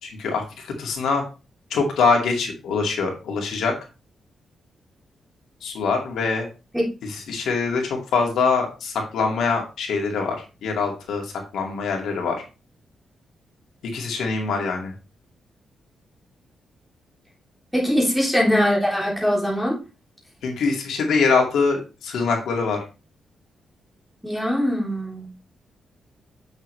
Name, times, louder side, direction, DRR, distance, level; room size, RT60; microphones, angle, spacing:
voice 1, 0.0-1.2 1.7-3.7 5.6-6.5 7.3-10.4 10.6-12.4 13.8-14.9 20.4-22.8, left 4 dB, 90° left, 1 dB, 2.2 m, -23 dB
voice 2, 17.7-19.8 24.2-25.3, equal, ahead, -4 dB, 3.4 m, -21 dB
7.9 x 6.4 x 3.3 m, 0.31 s
cardioid pair, 115°, 0 cm